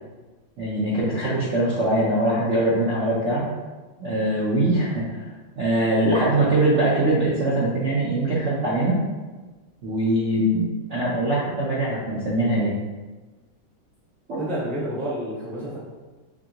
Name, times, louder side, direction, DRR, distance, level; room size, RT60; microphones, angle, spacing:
voice 1, 0.6-3.4 4.0-5.2 5.6-9.0 9.8-12.7 14.3-14.4, right 1 dB, 55° right, -8 dB, 0.8 m, -22 dB
voice 2, 14.4-15.8, equal, ahead, -9 dB, 0.5 m, -29 dB
5.0 x 2.7 x 2.8 m, 1.3 s
omnidirectional pair, 2.2 m